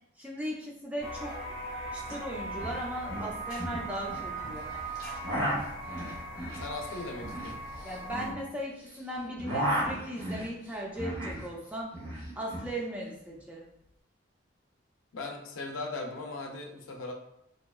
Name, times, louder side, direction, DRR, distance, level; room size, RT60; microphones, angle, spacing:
voice 1, 0.2-1.4 1.9-4.7 7.8-11.9 12.4-13.7, equal, 5° right, -3 dB, 0.4 m, -37 dB
sound 1, 1.0-8.3, right 2 dB, 45° left, 0.7 m, -39 dB
sound 2, 2.1-2.2 2.4-2.8 3.1-4.3 4.9-8.9 9.2-11.5 11.7-12.7, equal, 80° right, 1.0 m, -34 dB
voice 2, 6.5-7.6 15.1-17.1, left 2 dB, 85° left, 2 dB, 0.5 m, -38 dB
2.7 x 2.2 x 2.3 m, 0.79 s
head